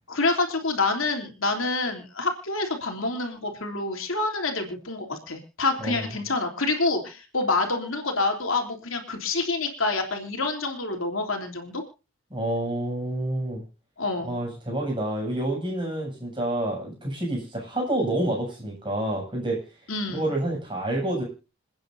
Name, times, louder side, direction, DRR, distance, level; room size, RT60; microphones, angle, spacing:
voice 1, 0.1-11.8 14.0-14.3 19.9-20.3, left 3 dB, 80° left, 4 dB, 3.4 m, -27 dB
voice 2, 12.3-13.6 14.2-19.6 20.1-21.2, right 1 dB, 25° right, 0 dB, 7.9 m, -28 dB
28.0 x 9.7 x 2.7 m, 0.32 s
head